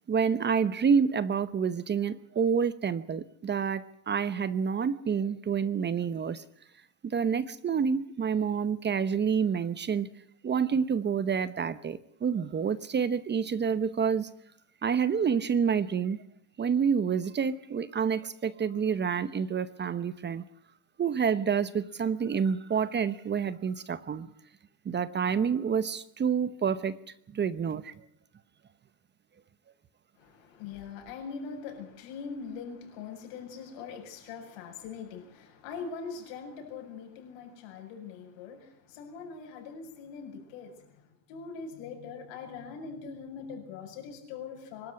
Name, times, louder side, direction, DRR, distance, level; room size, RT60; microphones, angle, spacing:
voice 1, 0.1-6.4 7.0-10.1 10.4-14.3 14.8-16.2 16.6-20.4 21.0-24.3 24.8-27.0 27.3-27.9, right 6 dB, 25° right, 15 dB, 0.9 m, -28 dB
voice 2, 30.2-44.9, left 5 dB, 75° left, 4 dB, 7.8 m, -42 dB
24.5 x 13.0 x 9.6 m, 0.74 s
cardioid pair, 135°, 43 cm